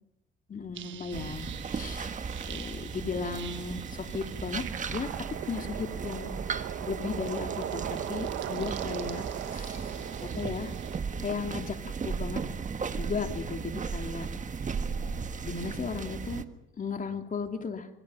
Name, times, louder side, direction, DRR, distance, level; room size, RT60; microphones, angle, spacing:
voice 1, 0.5-2.1 2.5-5.1 5.4-10.7 11.2-11.8 12.0-12.4 12.9-14.3 15.4-16.4 16.8-17.9, left 5 dB, 40° left, 5 dB, 3.0 m, -36 dB
sound 1, 0.7-11.0, right 10 dB, 75° right, 1.5 m, -39 dB
sound 2, 1.1-16.4, right 5 dB, 40° right, 1.5 m, -36 dB
26.0 x 24.0 x 5.7 m, 0.84 s
cardioid pair, 90°, 20 cm